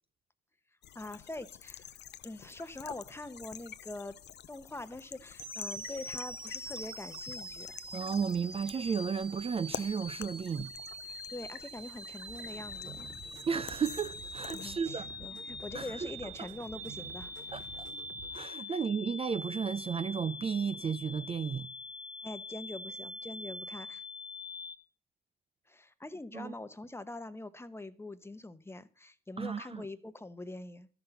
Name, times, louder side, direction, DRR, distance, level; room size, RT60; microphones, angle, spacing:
sound 1, 0.8-14.7, left 11 dB, 60° left, 0.6 m, -49 dB
voice 1, 0.9-1.9 2.2-4.2 4.5-7.8 11.1-13.1 14.5-17.3 18.7-18.8 22.2-24.0 25.7-30.9, left 2 dB, 10° left, 0.9 m, -44 dB
sound 2, 5.4-24.8, left 1 dB, 5° right, 1.3 m, -44 dB
voice 2, 7.9-10.7 13.5-15.4 15.7-16.1 16.4-16.5 17.5-17.9 18.3-21.7 26.3-26.5 29.4-29.9, right 6 dB, 30° right, 0.4 m, -34 dB
sound 3, 12.3-18.4, right 5 dB, 60° right, 3.2 m, -51 dB
13.0 x 5.8 x 6.9 m
cardioid pair, 90°, 20 cm